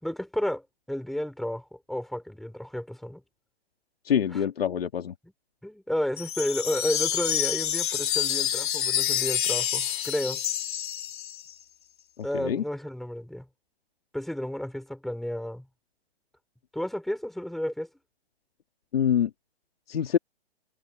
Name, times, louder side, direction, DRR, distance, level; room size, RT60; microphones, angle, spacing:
voice 1, 0.0-3.2 4.3-4.4 5.2-5.3 5.6-10.4 12.2-13.5 14.1-15.7 16.7-17.9, left 1 dB, ahead, 5.3 m, -32 dB
voice 2, 4.0-5.1 12.3-12.6 18.9-19.3 19.9-20.2, left 8 dB, 70° left, 2.3 m, -25 dB
sound 1, 6.2-11.5, left 10 dB, 50° left, 4.2 m, -28 dB
hypercardioid pair, 165°, 31 cm